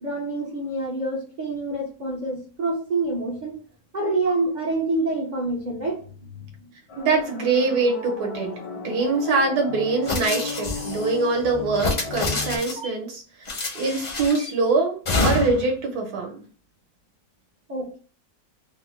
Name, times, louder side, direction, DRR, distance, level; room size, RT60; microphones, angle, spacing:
voice 1, 0.0-3.6 3.9-6.0 17.7-18.0, right 2 dB, 65° right, -2 dB, 0.4 m, -27 dB
sound 1, 6.9-12.6, left 4 dB, 75° left, 1.3 m, -35 dB
voice 2, 7.0-13.5 13.7-16.5, right 3 dB, 85° right, 2 dB, 1.3 m, -24 dB
sound 2, 10.1-11.1 11.7-12.9 13.5-14.5 15.1-15.7, left 3 dB, 45° left, 0.5 m, -27 dB
3.3 x 2.0 x 3.0 m, 0.38 s
omnidirectional pair, 1.6 m